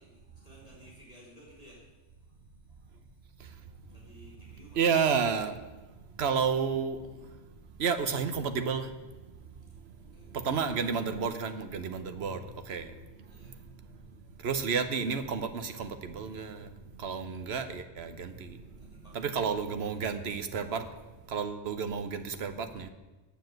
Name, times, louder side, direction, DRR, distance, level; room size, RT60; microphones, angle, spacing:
voice 1, 0.0-3.5 3.9-5.0 7.7-7.8 9.4-10.4 13.3-13.7 14.2-14.5 18.4-20.2, equal, 30° left, -4 dB, 3.3 m, -58 dB
voice 2, 4.7-5.6 6.2-7.0 7.8-8.9 10.4-12.4 12.7-12.9 14.4-16.7 17.0-18.6 19.1-20.8 21.3-22.9, right 6 dB, 65° right, 9 dB, 1.1 m, -31 dB
9.6 x 7.0 x 7.8 m, 1.2 s
omnidirectional pair, 1.2 m